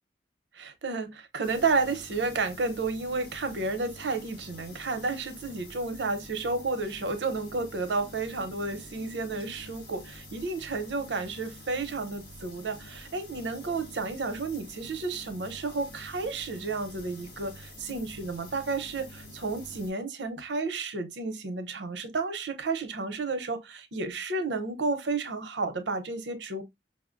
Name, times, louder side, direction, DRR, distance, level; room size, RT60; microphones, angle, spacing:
voice 1, 0.5-26.6, right 3 dB, 85° right, 0.7 m, -32 dB
sound 1, 1.4-19.9, left 1 dB, 55° left, 1.6 m, -47 dB
5.5 x 2.1 x 2.5 m
head